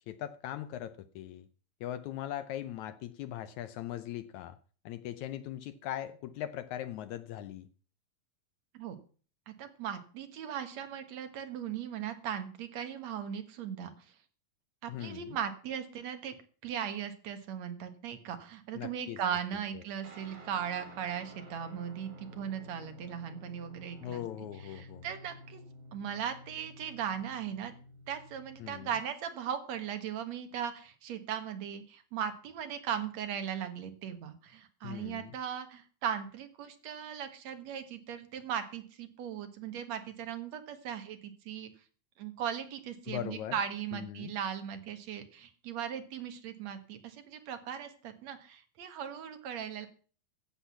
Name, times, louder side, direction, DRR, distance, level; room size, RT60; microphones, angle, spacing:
voice 1, 0.1-1.5 1.8-4.6 4.8-7.7 14.9-15.4 18.7-19.2 24.0-25.0 28.6-28.9 34.8-35.3 43.1-43.6 43.9-44.3, left 12 dB, 85° left, 11 dB, 1.6 m, -40 dB
voice 2, 9.5-14.1 14.8-16.4 16.6-24.2 24.7-25.6 25.9-27.7 28.1-41.7 42.2-49.9, right 8 dB, 55° right, 8 dB, 2.4 m, -38 dB
Guitar, 20.0-29.0, equal, 80° right, 5.7 m, -51 dB
15.0 x 8.0 x 5.8 m, 0.40 s
omnidirectional pair, 4.3 m